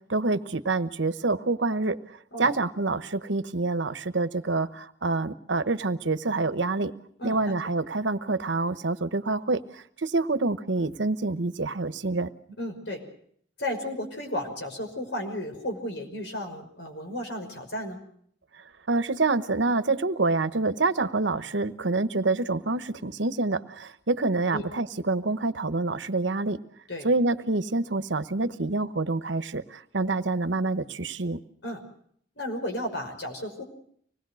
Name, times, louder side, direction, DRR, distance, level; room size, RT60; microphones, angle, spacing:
voice 1, 0.0-2.0 2.4-6.9 7.2-12.3 18.9-26.6 27.0-31.4, right 3 dB, 85° right, 12 dB, 1.1 m, -27 dB
voice 2, 7.2-7.5 12.6-13.0 13.6-18.0 24.5-24.7 26.9-27.1 31.6-31.8 32.4-33.6, left 1 dB, 70° left, 4 dB, 5.5 m, -33 dB
25.5 x 20.0 x 6.4 m, 0.64 s
head